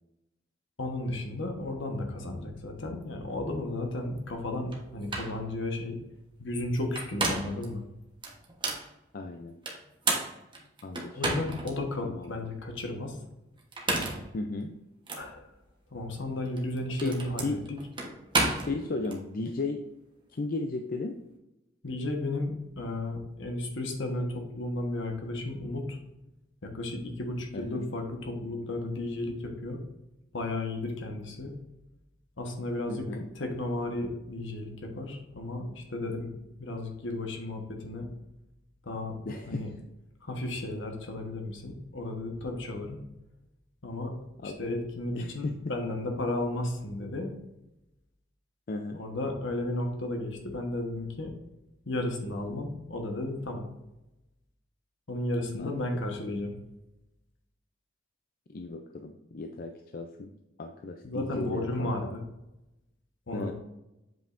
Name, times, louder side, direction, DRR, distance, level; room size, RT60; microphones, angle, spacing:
voice 1, 0.8-6.0 6.4-7.8 11.1-13.2 15.1-15.5 15.9-17.8 21.8-26.0 26.6-29.8 30.3-31.5 32.4-33.1 33.3-36.3 36.6-38.1 38.8-39.2 39.5-39.7 40.2-43.0 43.8-44.1 44.4-47.3 48.9-51.3 51.9-53.7 55.1-56.5 61.0-62.2 63.3-63.5, left 2 dB, 70° left, 3 dB, 1.3 m, -34 dB
sound 1, 4.7-4.8 5.1-5.4 6.8-7.7 8.2-8.9 9.7-11.7 12.2-12.3 13.6-14.3 15.1-15.2 16.5-19.2, right 2 dB, 25° right, 1.2 m, -31 dB
voice 2, 9.1-9.6 10.8-11.5 12.0-12.5 14.3-14.8 17.0-17.6 18.6-19.8 20.3-21.2 27.5-27.9 32.9-33.3 39.3-39.7 44.4-44.6 45.1-45.7 48.7-49.0 55.6-55.9 58.5-60.3 60.6-61.9 63.3-63.5, left 3 dB, 50° left, 5 dB, 0.5 m, -35 dB
7.6 x 5.4 x 2.6 m, 0.93 s
head